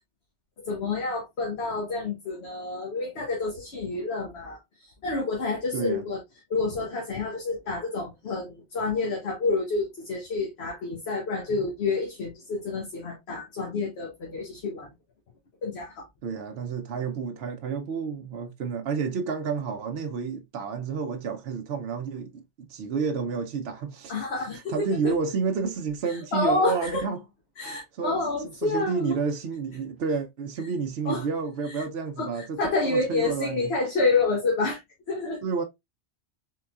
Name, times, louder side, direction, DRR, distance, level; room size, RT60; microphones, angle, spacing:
voice 1, 0.6-6.2 6.5-14.9 15.6-16.1 24.1-25.1 26.0-27.0 27.6-29.2 31.0-31.2 31.6-31.8 32.2-34.8 35.1-35.5, left 3 dB, 65° left, 1.2 m, -28 dB
voice 2, 5.7-6.0 16.2-24.3 24.7-27.2 27.6-28.2 28.6-32.6 32.9-33.7 35.4-35.6, right 5 dB, 70° right, 0.8 m, -30 dB
3.8 x 3.8 x 2.3 m
omnidirectional pair, 1.2 m